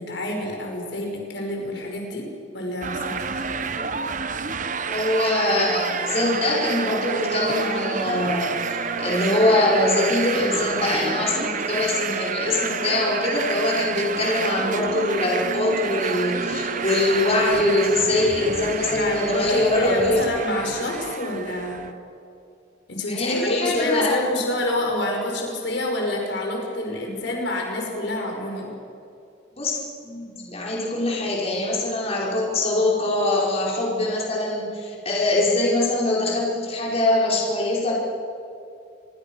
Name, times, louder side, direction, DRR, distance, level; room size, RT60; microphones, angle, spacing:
voice 1, 0.0-2.2 2.5-3.4 18.9-21.8 22.9-28.7 34.8-35.0, left 1 dB, 65° left, 1 dB, 5.7 m, -27 dB
sound 1, 2.8-21.9, right 5 dB, 40° right, 1.2 m, -29 dB
voice 2, 4.9-20.2 23.1-24.2 29.6-29.7 30.0-37.9, left 2 dB, 30° left, -4 dB, 5.6 m, -23 dB
28.0 x 23.0 x 6.5 m, 2.6 s
head